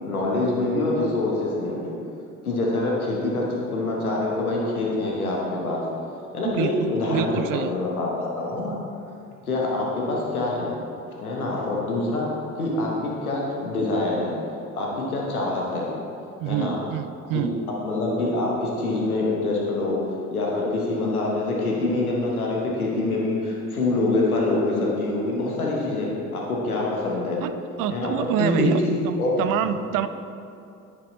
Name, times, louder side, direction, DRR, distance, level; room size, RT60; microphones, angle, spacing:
voice 1, 0.0-1.9 2.4-3.4 3.7-5.8 6.3-8.7 9.5-10.8 11.2-14.3 14.7-15.9 16.5-16.8 17.3-17.4 17.8-20.0 20.3-27.4 27.9-29.3 29.7-29.8, left 2 dB, 90° left, -3 dB, 1.0 m, -25 dB
voice 2, 6.4-7.8 16.4-17.6 27.4-27.5 27.8-30.1, right 10 dB, 50° right, 12 dB, 0.5 m, -27 dB
10.0 x 5.3 x 4.1 m, 2.6 s
figure-of-eight pair, 50°, 42 cm